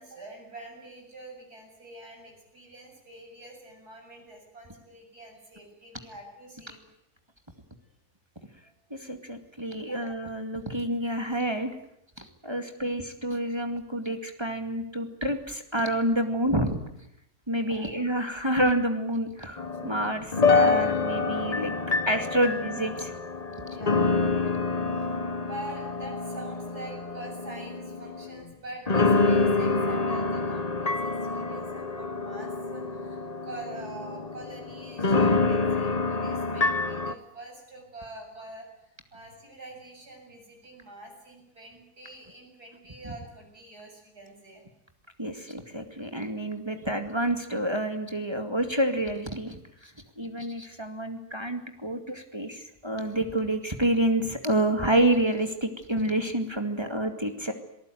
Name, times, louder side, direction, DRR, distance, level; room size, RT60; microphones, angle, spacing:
voice 1, 0.0-6.8 9.9-10.0 12.6-12.9 17.6-18.0 23.7-24.1 25.3-44.6 46.8-46.9 56.8-56.9, right 2 dB, 85° right, 1 dB, 8.3 m, -45 dB
voice 2, 8.9-11.7 12.2-16.8 17.5-21.7 22.1-23.1 23.7-23.8 43.0-43.1 45.2-49.9 50.2-57.5, right 1 dB, 15° right, 5 dB, 2.3 m, -28 dB
sound 1, 19.6-28.4 28.9-37.1, left 3 dB, 30° left, 1.1 m, -27 dB
27.5 x 18.5 x 9.3 m, 0.77 s
omnidirectional pair, 1.6 m